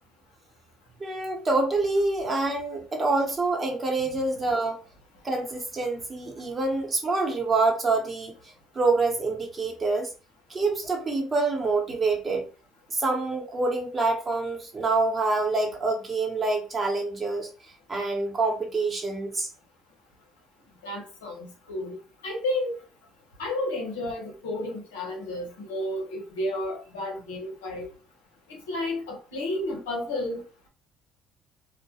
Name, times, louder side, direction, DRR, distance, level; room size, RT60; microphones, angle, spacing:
voice 1, 1.0-4.8 5.2-8.3 8.7-10.1 10.5-12.4 12.9-17.5 17.9-19.5, right 3 dB, 35° right, 0.9 m, -26 dB
voice 2, 20.8-22.0 22.2-22.8 23.4-27.9 28.7-30.4, left 1 dB, 85° left, 0.7 m, -31 dB
2.2 x 2.1 x 2.8 m
hypercardioid pair, 55°, 0 cm